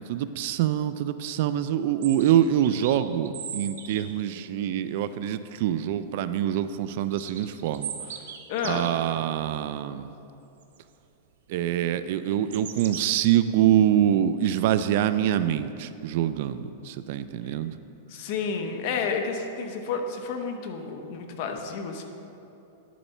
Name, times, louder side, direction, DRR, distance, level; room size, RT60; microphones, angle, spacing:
voice 1, 0.0-8.2 8.6-10.1 11.5-17.8, right 11 dB, 55° right, 13 dB, 0.3 m, -25 dB
sound 1, 2.0-4.2 7.0-9.1 10.6-10.8 12.3-13.0, right 8 dB, 80° right, 0.7 m, -38 dB
voice 2, 8.5-8.9 18.1-22.0, left 5 dB, 50° left, 4 dB, 0.8 m, -31 dB
10.0 x 4.0 x 5.6 m, 2.8 s
supercardioid pair, 150°, 0 cm